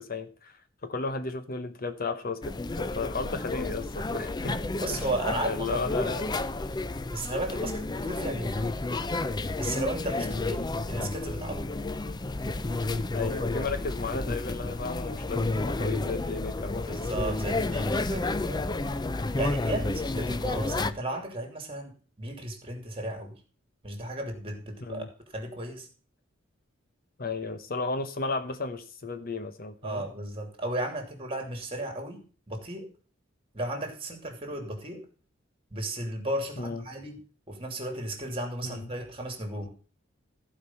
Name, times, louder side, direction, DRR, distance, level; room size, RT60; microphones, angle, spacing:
voice 1, 0.0-4.6 4.9-5.0 5.4-6.3 7.2-7.3 10.2-10.5 13.1-17.0 19.7-19.9 24.8-25.1 27.2-30.0 36.6-36.8 38.6-38.9, left 3 dB, 50° left, 9 dB, 1.0 m, -34 dB
sound 1, 2.4-20.9, left 2 dB, 20° left, 0.5 m, -31 dB
voice 2, 4.8-6.1 7.1-8.7 9.6-11.7 16.9-18.9 19.4-23.3 23.8-25.1 25.3-25.9 29.8-32.9 33.5-35.0 35.7-37.2 37.5-39.7, right 1 dB, 30° right, 4 dB, 2.9 m, -35 dB
15.0 x 5.1 x 5.6 m, 0.38 s
head